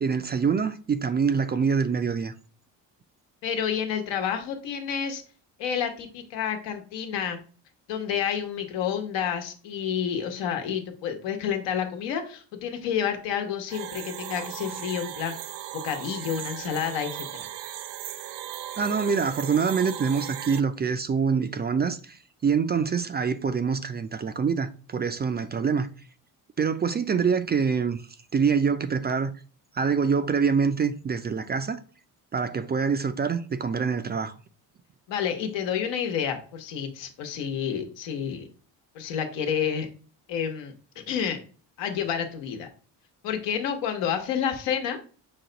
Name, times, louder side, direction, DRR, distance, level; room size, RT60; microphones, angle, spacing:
voice 1, 0.0-2.3 18.8-25.9 26.6-28.0 28.3-29.3 29.7-31.8 32.3-34.3, right 6 dB, 25° right, 0.4 m, -25 dB
voice 2, 3.4-5.2 5.6-7.4 7.9-15.3 15.8-17.3 35.1-38.5 38.9-39.9 40.3-41.4 41.8-42.7 43.2-45.0, left 8 dB, 80° left, 1.2 m, -29 dB
sound 1, 13.7-20.6, right 13 dB, 70° right, 0.5 m, -37 dB
5.9 x 2.2 x 3.9 m
supercardioid pair, 75°, 43 cm